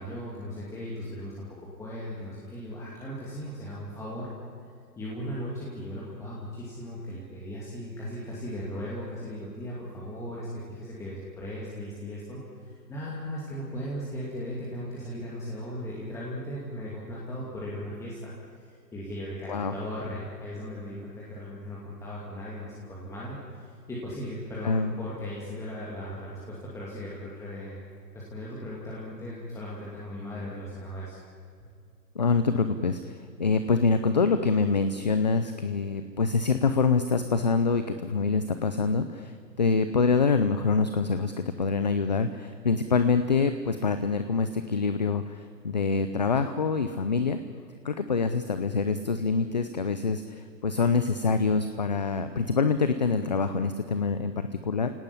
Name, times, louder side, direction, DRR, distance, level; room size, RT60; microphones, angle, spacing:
voice 1, 0.0-4.3 5.0-18.3 18.9-27.8 28.1-31.2, equal, 5° left, -6 dB, 2.6 m, -37 dB
voice 2, 32.2-47.4 47.8-54.9, left 4 dB, 25° left, 10 dB, 0.5 m, -25 dB
29.0 x 18.0 x 9.9 m, 2.4 s
hypercardioid pair, 160°, 49 cm